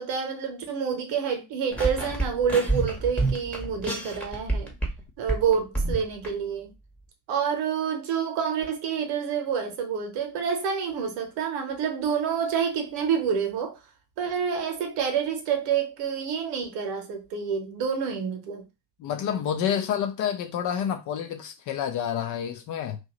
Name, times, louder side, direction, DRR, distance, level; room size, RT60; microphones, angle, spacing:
voice 1, 0.0-4.7 5.2-6.7 7.3-13.8 14.2-18.6, right 7 dB, 55° right, 0.9 m, -28 dB
sound 1, 1.7-5.0 5.3-6.3, right 2 dB, 5° left, 1.0 m, -28 dB
voice 2, 19.0-23.0, left 9 dB, 40° left, 0.5 m, -28 dB
2.7 x 2.3 x 2.9 m
figure-of-eight pair, 55°, 50 cm